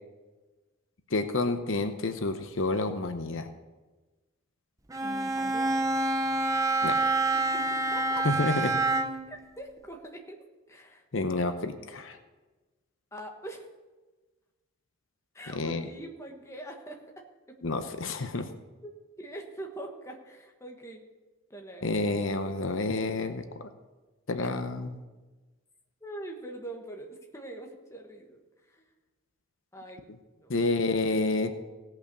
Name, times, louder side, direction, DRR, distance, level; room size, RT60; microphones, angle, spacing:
voice 1, 1.1-3.5 6.8-6.9 8.2-8.8 11.1-12.2 15.5-15.9 17.6-18.5 21.8-23.4 24.3-25.0 30.5-31.5, left 2 dB, 70° left, 8 dB, 0.8 m, -29 dB
Bowed string instrument, 4.9-9.4, right 2 dB, 15° right, 0.6 m, -27 dB
voice 2, 5.0-5.7 7.3-8.4 9.3-10.4 10.7-11.0 13.1-13.7 15.3-17.6 18.8-18.9 19.2-21.0 21.5-21.8 24.4-24.5 26.0-28.4 28.7-28.9 29.7-30.0 30.4-30.6, right 1 dB, 15° left, 2 dB, 1.3 m, -43 dB
17.0 x 5.7 x 6.8 m, 1.2 s
head